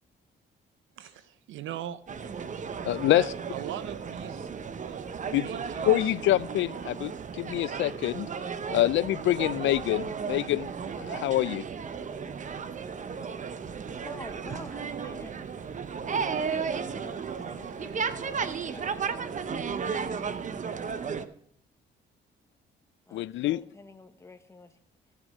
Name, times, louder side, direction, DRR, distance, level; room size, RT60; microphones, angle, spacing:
voice 1, 1.0-2.3 3.0-6.2, right 11 dB, 80° right, 0.7 m, -41 dB
sound 1, 2.1-21.3, right 6 dB, 40° right, 0.8 m, -34 dB
voice 2, 2.9-3.2 5.3-5.4 5.9-8.3 8.7-10.7 11.0-11.6 23.1-23.6, left 14 dB, 70° left, 0.4 m, -26 dB
voice 3, 13.0-15.9 16.1-19.0 23.1-24.8, left 2 dB, 15° left, 1.2 m, -49 dB
16.5 x 6.2 x 5.3 m
cardioid pair, 90°, 20 cm